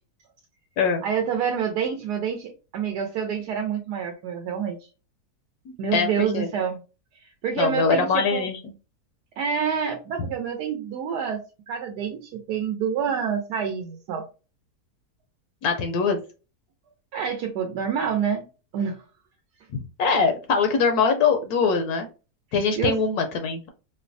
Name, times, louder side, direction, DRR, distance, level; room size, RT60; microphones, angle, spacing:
voice 1, 1.0-4.9 5.8-6.8 7.2-8.5 9.4-11.4 11.7-14.2 17.1-18.5 18.7-19.0 22.8-23.0, right 7 dB, 80° right, 3 dB, 1.2 m, -27 dB
voice 2, 5.7-6.5 7.5-8.6 15.6-16.2 19.7-22.1 22.5-23.7, left 5 dB, 75° left, 5 dB, 1.1 m, -23 dB
4.6 x 2.1 x 2.5 m, 0.33 s
omnidirectional pair, 1.7 m